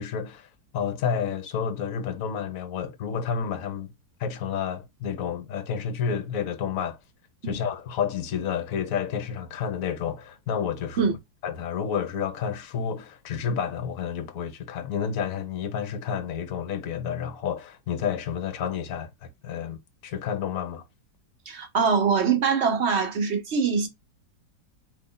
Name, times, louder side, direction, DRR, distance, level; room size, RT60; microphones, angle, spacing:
voice 1, 0.0-3.9 4.2-7.0 7.4-11.1 11.4-20.8, left 7 dB, 55° left, 1.1 m, -30 dB
voice 2, 21.5-23.9, right 5 dB, 45° right, 1.1 m, -23 dB
4.7 x 2.6 x 3.9 m
omnidirectional pair, 2.0 m